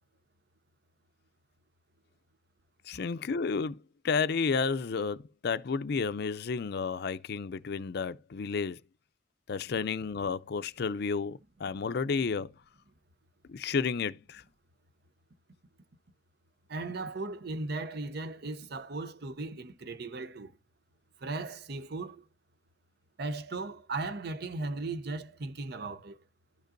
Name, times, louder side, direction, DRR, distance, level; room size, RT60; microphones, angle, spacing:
voice 1, 2.9-3.8 4.0-8.8 9.5-12.5 13.5-14.4, left 5 dB, 60° left, 0.5 m, -31 dB
voice 2, 16.7-20.5 21.2-22.2 23.2-26.2, right 3 dB, 60° right, 0.7 m, -37 dB
12.5 x 5.2 x 2.6 m
head